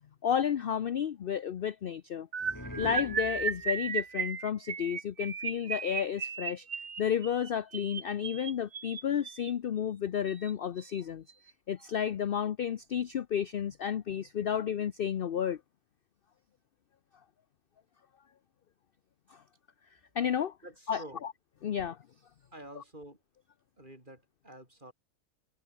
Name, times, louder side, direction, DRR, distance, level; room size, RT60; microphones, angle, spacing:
voice 1, 0.2-2.3 2.8-6.7 7.0-11.2 11.7-15.6 20.2-20.5 20.9-21.0 21.6-22.0 22.8-22.9, left 8 dB, 55° left, 0.6 m, -32 dB
sound 1, 2.3-9.5 10.3-10.5 10.8-11.0 11.3-11.5, right 6 dB, 60° right, 2.1 m, -35 dB
sound 2, 2.4-4.0, left 1 dB, 10° left, 2.9 m, -43 dB
voice 2, 20.6-21.3 22.5-23.2 23.8-24.9, right 1 dB, 30° right, 6.7 m, -49 dB
omnidirectional pair, 1.6 m